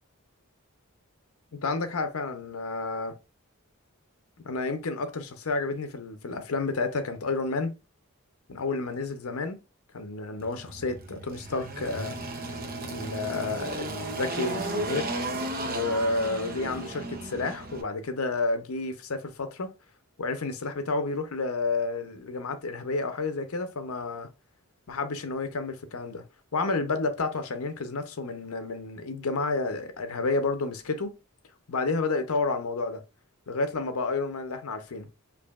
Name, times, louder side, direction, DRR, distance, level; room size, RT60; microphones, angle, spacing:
voice 1, 1.6-3.1 4.4-7.7 8.5-9.6 9.9-12.2 12.9-15.1 15.7-19.7 20.2-24.3 24.9-26.2 26.5-31.1 31.7-33.0 33.5-35.1, left 3 dB, 75° left, 0.7 m, -30 dB
Engine, 10.4-17.8, right 2 dB, 40° right, 0.6 m, -34 dB
4.8 x 2.7 x 2.4 m
head